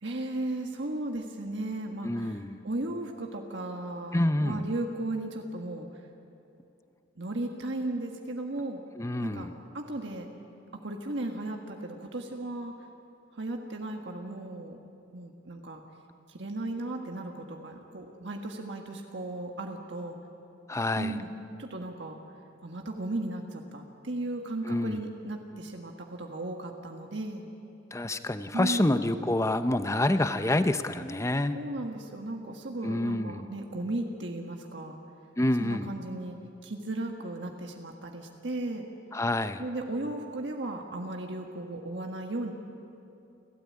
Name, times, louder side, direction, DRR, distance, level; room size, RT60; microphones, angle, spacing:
voice 1, 0.0-5.9 7.2-8.8 9.2-9.5 9.7-10.3 10.7-12.7 13.3-14.8 15.1-15.8 16.3-20.2 21.0-21.3 21.6-22.2 22.6-27.4 28.5-29.0 31.5-35.0 35.6-36.4 36.6-38.8 39.6-42.5, right 2 dB, 70° right, 2 dB, 1.7 m, -35 dB
voice 2, 2.0-2.6 4.1-4.6 9.0-9.5 20.7-21.2 24.7-25.0 27.9-31.6 32.8-33.4 35.4-35.9 39.1-39.6, left 1 dB, 15° left, 10 dB, 0.7 m, -27 dB
29.5 x 13.0 x 8.6 m, 2.7 s
head